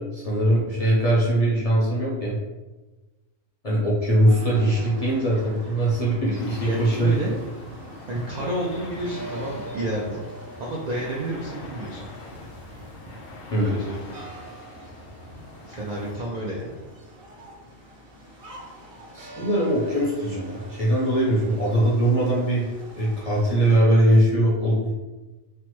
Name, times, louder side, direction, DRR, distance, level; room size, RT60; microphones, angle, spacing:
voice 1, 0.0-2.4 3.6-7.1 13.5-13.8 19.1-22.7 23.0-24.9, right 1 dB, 45° left, -6 dB, 0.5 m, -21 dB
sound 1, 4.2-23.8, right 1 dB, 55° right, 0.8 m, -43 dB
sound 2, 6.3-16.2, left 3 dB, 85° left, 0.9 m, -44 dB
voice 2, 6.6-7.4 8.1-10.2 10.6-12.0 13.6-14.1 15.7-16.6, right 1 dB, 80° right, -3 dB, 0.3 m, -30 dB
3.2 x 2.0 x 3.0 m, 1.1 s
omnidirectional pair, 1.3 m